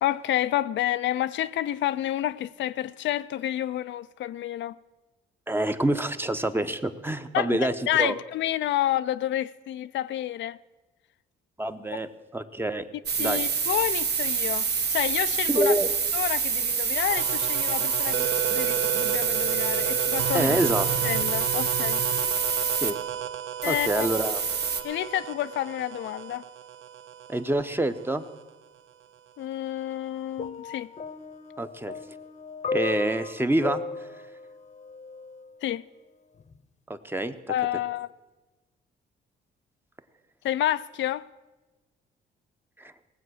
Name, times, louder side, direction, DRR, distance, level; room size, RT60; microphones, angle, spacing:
voice 1, 0.0-4.8 7.3-10.6 13.2-15.7 16.1-20.6 21.0-22.0 23.6-24.1 24.8-26.4 29.4-30.9 35.6-35.8 37.5-38.1 40.4-41.3, left 12 dB, 70° left, 0.4 m, -29 dB
voice 2, 5.5-7.7 8.0-8.1 11.6-12.1 12.3-12.9 13.2-13.4 15.5-15.9 20.3-20.9 22.8-23.0 23.7-24.4 27.3-28.2 31.6-32.0 32.7-33.8 36.9-37.3 42.8-42.9, right 1 dB, 10° right, 0.8 m, -26 dB
sound 1, 13.1-22.9 23.6-24.8, right 6 dB, 55° right, 1.2 m, -27 dB
sound 2, 17.1-28.5, right 11 dB, 80° right, 0.6 m, -33 dB
sound 3, 30.4-35.5 36.4-36.6, left 4 dB, 35° left, 0.8 m, -36 dB
18.5 x 7.8 x 6.3 m
cardioid pair, 90°, 20 cm